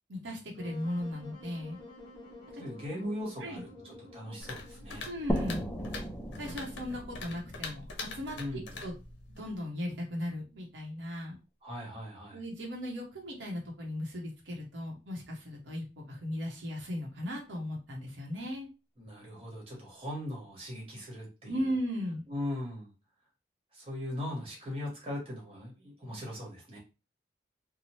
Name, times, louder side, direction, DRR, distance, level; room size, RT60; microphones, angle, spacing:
voice 1, 0.1-1.8 3.4-3.6 5.0-5.6 6.4-8.9 9.3-11.4 12.3-18.7 21.5-22.2, equal, 80° right, -1 dB, 0.8 m, -37 dB
Wind instrument woodwind instrument, 0.6-5.7, left 2 dB, 25° left, 0.8 m, -50 dB
voice 2, 2.6-5.1 8.4-8.7 11.6-12.4 19.0-21.8 22.3-22.9 23.7-26.8, left 1 dB, 30° right, -3 dB, 1.1 m, -39 dB
sound 1, 4.4-9.6, left 3 dB, 80° left, 0.6 m, -44 dB
sound 2, 5.3-8.8, equal, 10° left, 0.3 m, -36 dB
2.7 x 2.1 x 3.0 m, 0.29 s
head